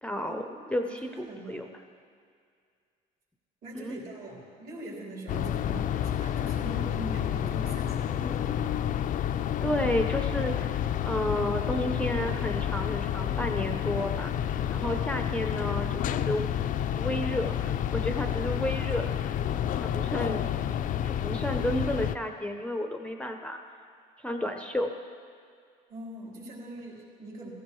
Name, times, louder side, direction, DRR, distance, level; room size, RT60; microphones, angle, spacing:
voice 1, 0.0-1.7 3.7-4.0 9.6-10.7 11.0-14.3 14.7-16.5 17.0-19.1 19.8-20.5 21.0-23.6 24.2-24.9, left 1 dB, 5° left, 4 dB, 0.6 m, -31 dB
voice 2, 0.8-1.7 3.6-9.1 25.9-27.5, right 1 dB, 60° right, -4 dB, 3.9 m, -42 dB
sound 1, 5.3-22.2, left 10 dB, 50° left, 0.4 m, -29 dB
15.5 x 14.5 x 3.1 m, 2.2 s
cardioid pair, 110°, 17 cm